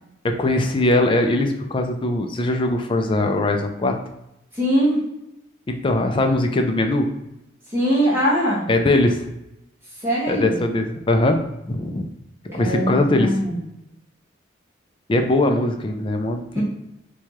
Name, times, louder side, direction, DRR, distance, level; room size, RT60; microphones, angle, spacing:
voice 1, 0.2-4.0 5.7-7.1 8.7-9.2 10.3-11.4 11.7-12.1 12.5-13.4 15.1-16.6, left 2 dB, 25° left, 5 dB, 0.4 m, -20 dB
voice 2, 4.5-5.0 7.7-8.6 10.0-10.6 12.5-13.6 16.5-16.6, equal, 15° right, -7 dB, 0.9 m, -21 dB
4.6 x 2.3 x 2.9 m, 0.86 s
head